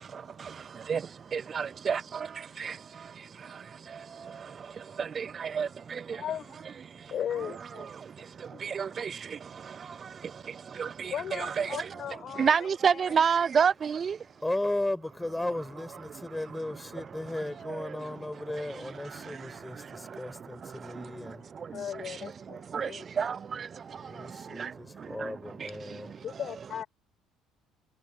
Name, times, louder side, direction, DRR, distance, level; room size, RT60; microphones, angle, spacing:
voice 1, 1.3-2.0 2.6-2.7 5.0-5.7 8.6-9.1 10.8-11.1 11.4-11.7 12.4-14.1 22.7-22.9 23.2-23.4 24.6-24.7, right 6 dB, 40° right, 0.3 m, -27 dB
voice 2, 6.1-6.8 7.1-7.9 8.5-8.7 11.1-13.2 21.7-23.1 26.2-26.9, left 9 dB, 50° left, 5.9 m, -37 dB
voice 3, 14.4-21.5 23.9-26.1, left 1 dB, 10° left, 6.4 m, -36 dB
supercardioid pair, 90°, 0 cm